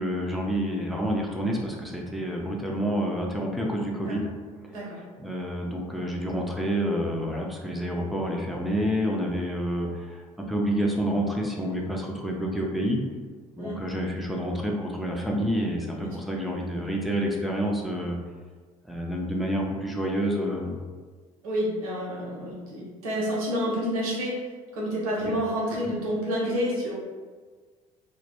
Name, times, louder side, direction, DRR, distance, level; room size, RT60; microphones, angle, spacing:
voice 1, 0.0-4.3 4.6-4.7 5.2-13.0 13.6-18.2 18.9-20.8 25.2-25.3 25.8-25.9, equal, ahead, -1 dB, 0.4 m, -28 dB
voice 2, 4.7-5.0 13.6-13.8 16.0-16.2 21.4-26.9, equal, 70° right, -4 dB, 0.7 m, -29 dB
2.2 x 2.1 x 2.9 m, 1.5 s
figure-of-eight pair, 55°, 19 cm